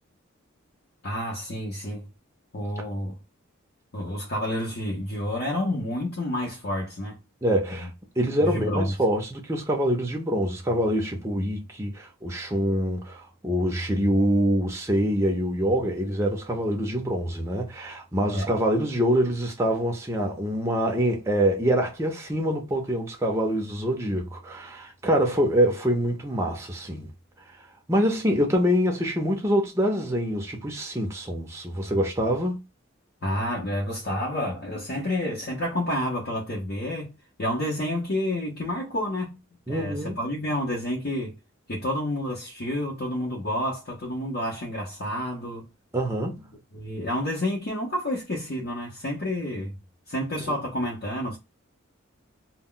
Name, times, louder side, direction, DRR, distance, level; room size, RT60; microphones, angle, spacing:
voice 1, 1.0-2.1 2.5-3.2 3.9-7.2 7.7-7.9 8.4-8.9 18.3-18.5 33.2-39.4 39.7-41.4 41.7-45.7 46.7-49.7 50.1-51.4, left 1 dB, 50° left, 0.7 m, -29 dB
voice 2, 7.4-7.9 8.2-27.1 27.9-32.6 39.7-40.2 45.9-46.5 50.5-50.6, equal, 15° right, 0.5 m, -25 dB
2.2 x 2.1 x 3.7 m
head